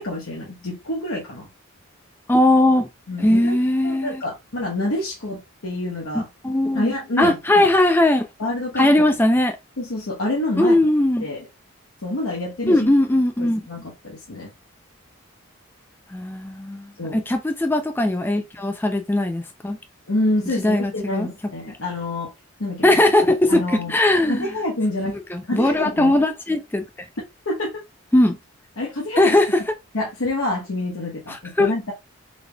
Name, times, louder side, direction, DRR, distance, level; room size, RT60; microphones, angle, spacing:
voice 1, 0.0-1.5 3.1-3.6 3.8-6.3 6.7-7.7 8.4-8.9 9.8-10.8 11.2-11.5 12.0-12.9 13.4-14.5 17.0-17.2 20.1-22.3 22.6-23.0 23.5-23.9 24.3-25.2 25.5-26.1 27.5-27.8 28.8-29.4 29.9-31.9, left 2 dB, 80° left, 1.1 m, -27 dB
voice 2, 2.3-2.9 3.2-4.2 6.1-8.3 8.8-9.6 10.6-11.3 12.7-13.6 16.1-19.8 20.6-21.3 22.8-24.5 25.3-26.8 28.1-28.4 29.2-29.6 31.3-31.7, left 1 dB, 10° left, 0.4 m, -19 dB
3.9 x 3.4 x 2.3 m
head